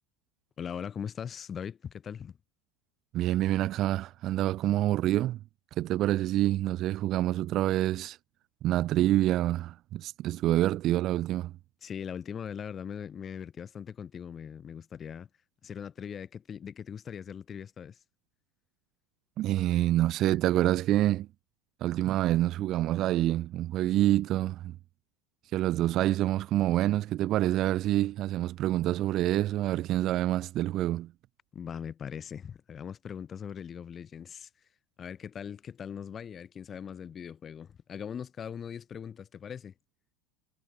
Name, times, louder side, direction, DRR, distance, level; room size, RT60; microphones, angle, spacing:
voice 1, 0.6-2.4 11.8-15.3 15.6-18.0 31.5-34.5 35.0-39.7, left 8 dB, 20° left, 2.7 m, -40 dB
voice 2, 3.1-5.4 5.8-8.2 8.6-11.5 19.4-21.3 21.8-24.8 25.5-31.1, right 14 dB, 35° right, 0.8 m, -27 dB
supercardioid pair, 165°, 0 cm